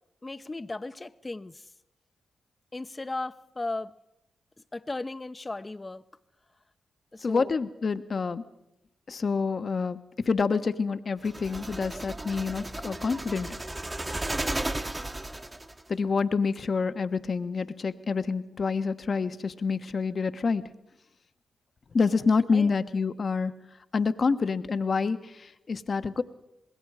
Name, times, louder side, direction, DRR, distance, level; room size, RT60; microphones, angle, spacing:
voice 1, 0.2-1.6 2.7-3.9 4.7-6.0 7.1-7.6 22.5-22.7, left 2 dB, 30° left, 0.8 m, -36 dB
voice 2, 7.2-8.4 9.1-10.0 10.3-13.5 15.9-20.6 21.9-23.6 23.9-25.2 25.7-26.2, left 4 dB, 55° left, 1.1 m, -27 dB
sound 1, 11.2-15.8, right 1 dB, 25° right, 1.3 m, -34 dB
26.5 x 21.0 x 4.9 m
supercardioid pair, 40°, 0 cm